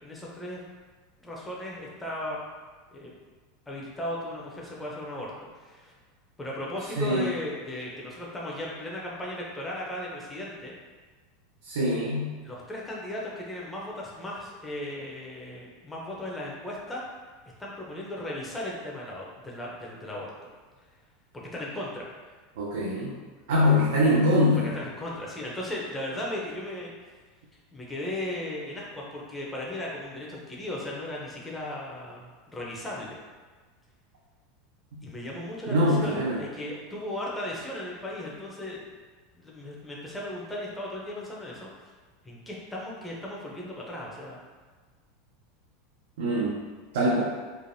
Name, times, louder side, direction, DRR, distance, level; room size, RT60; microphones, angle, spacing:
voice 1, 0.0-0.6 1.2-2.4 2.9-3.1 3.7-5.9 6.4-10.7 12.4-17.0 17.6-20.3 21.5-22.1 24.6-26.9 27.7-33.2 35.0-38.8 39.3-41.9 42.2-44.4, left 1 dB, 10° left, -4 dB, 0.5 m, -36 dB
voice 2, 7.0-7.3 11.6-12.3 22.6-23.2 23.5-24.7 35.7-36.4 46.2-46.6 46.9-47.2, left 1 dB, 85° right, -4 dB, 0.5 m, -23 dB
3.2 x 2.1 x 2.6 m, 1.4 s
supercardioid pair, 140°, 0 cm